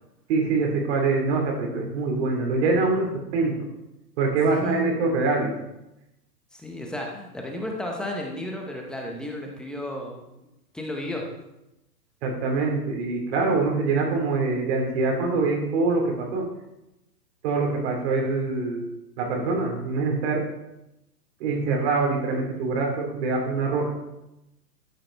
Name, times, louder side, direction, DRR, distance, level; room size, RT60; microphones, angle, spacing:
voice 1, 0.3-3.6 4.2-5.5 12.2-16.5 17.4-18.9 19.2-20.4 21.4-23.9, right 3 dB, 45° right, 1 dB, 3.1 m, -24 dB
voice 2, 4.5-5.3 6.5-10.3 10.7-11.2, left 1 dB, ahead, 0 dB, 0.7 m, -33 dB
12.5 x 8.7 x 3.3 m, 0.92 s
hypercardioid pair, 140°, 48 cm